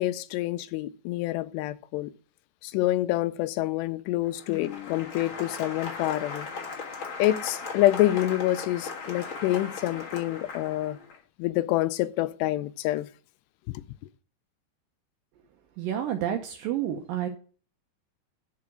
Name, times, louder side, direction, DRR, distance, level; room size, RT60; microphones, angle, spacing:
voice 1, 0.0-2.1 2.6-6.5 7.2-11.0 11.4-13.1 13.7-13.8, left 15 dB, 85° left, 2.7 m, -27 dB
Applause, 4.2-11.2, left 4 dB, 65° left, 1.3 m, -38 dB
voice 2, 15.8-17.3, right 10 dB, 75° right, 2.1 m, -29 dB
10.5 x 4.9 x 6.3 m
omnidirectional pair, 4.8 m